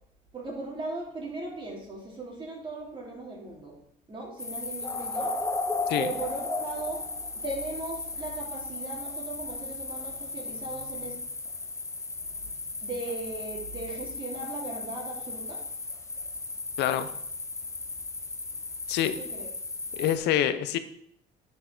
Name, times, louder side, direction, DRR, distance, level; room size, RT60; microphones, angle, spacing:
voice 1, 0.3-3.8 4.1-5.3 6.0-11.2 12.2-15.6 19.0-19.5, right 2 dB, 30° right, -2 dB, 3.4 m, -38 dB
sound 1, 4.4-20.2, left 3 dB, 15° left, 0.9 m, -35 dB
voice 2, 16.8-17.1 18.9-19.2 20.0-20.8, left 11 dB, 80° left, 12 dB, 0.8 m, -26 dB
9.9 x 7.3 x 4.0 m, 0.71 s
cardioid pair, 110°, 17 cm